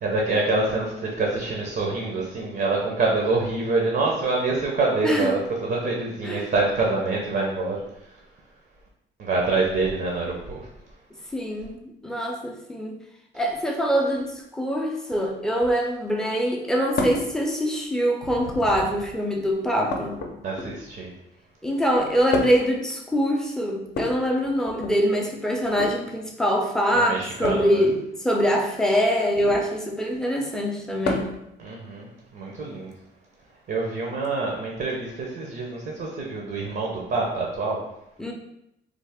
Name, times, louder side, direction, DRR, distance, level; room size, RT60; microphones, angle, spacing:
voice 1, 0.0-7.8 9.2-10.7 20.4-21.1 26.9-27.8 31.6-32.9 33.7-37.8, right 3 dB, 55° right, -1 dB, 0.7 m, -26 dB
voice 2, 5.0-5.4 6.2-6.5 11.3-13.0 13.3-20.2 21.6-31.3 38.2-38.3, equal, 5° left, 0 dB, 0.5 m, -24 dB
sound 1, 17.0-17.3 18.4-18.9 19.9-21.0 22.3-22.7 23.9-24.9 25.6-26.0 27.4-27.7 29.3-29.7 31.0-31.4 32.9-33.0 34.2-34.3, left 3 dB, 55° left, 0.6 m, -30 dB
3.2 x 2.0 x 3.4 m, 0.83 s
cardioid pair, 90°, 20 cm